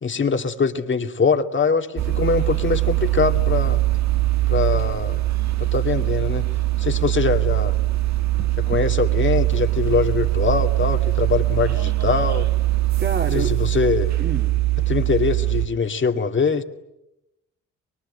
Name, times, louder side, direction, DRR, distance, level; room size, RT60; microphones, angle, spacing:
voice 1, 0.0-3.8 4.5-5.2 5.6-6.4 6.8-7.7 8.6-12.5 13.3-14.1 14.9-16.6, left 5 dB, 40° left, 6 dB, 2.4 m, -23 dB
sound 1, 2.0-15.7, right 17 dB, 65° right, 1.6 m, -21 dB
voice 2, 13.0-13.5 14.2-14.6, right 4 dB, 40° right, 4 dB, 2.7 m, -27 dB
24.0 x 24.0 x 10.0 m, 0.90 s
cardioid pair, 90°, 30 cm